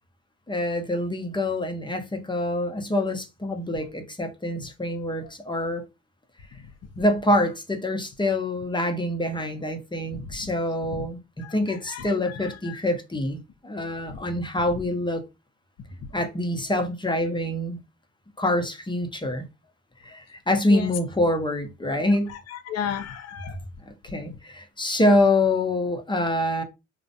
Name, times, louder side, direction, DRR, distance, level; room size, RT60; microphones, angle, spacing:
voice 1, 0.5-5.8 7.0-15.2 16.1-17.8 18.4-19.5 20.0-22.3 23.9-26.6, left 1 dB, 15° left, 0.6 m, -25 dB
voice 2, 10.1-10.5 10.9-11.0 11.4-11.5 11.9-12.8 14.0-14.2 20.7-20.9 22.5-23.6, left 8 dB, 60° left, 0.6 m, -34 dB
2.4 x 2.0 x 2.7 m
supercardioid pair, 55°, 29 cm